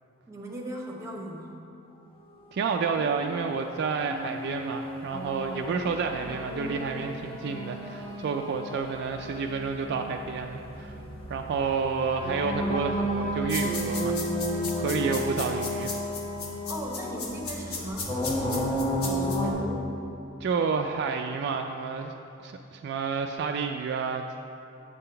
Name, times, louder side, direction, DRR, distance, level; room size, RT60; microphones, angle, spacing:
voice 1, 0.3-1.6 16.7-18.7 19.2-19.9, equal, 15° right, -1 dB, 1.0 m, -38 dB
voice 2, 2.5-11.0 11.3-14.2 14.8-16.0 20.4-22.1 22.4-24.4, right 5 dB, 50° right, 4 dB, 0.3 m, -30 dB
sound 1, 3.0-19.5, equal, 25° left, 1.0 m, -33 dB
sound 2, 13.5-19.4, left 4 dB, 90° left, 1.0 m, -35 dB
8.1 x 3.8 x 6.7 m, 2.8 s
head